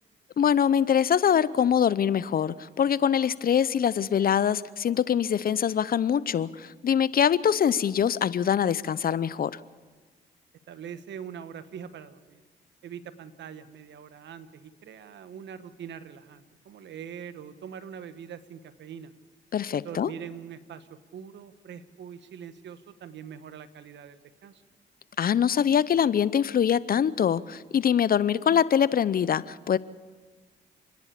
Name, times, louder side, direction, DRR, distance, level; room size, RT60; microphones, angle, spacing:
voice 1, 0.4-9.6 19.5-20.1 25.2-29.8, left 8 dB, 50° left, 18 dB, 0.7 m, -24 dB
voice 2, 10.7-12.4 12.8-19.1 19.8-24.6, right 8 dB, 70° right, 12 dB, 1.2 m, -43 dB
29.0 x 10.5 x 8.5 m, 1.3 s
supercardioid pair, 65°, 19 cm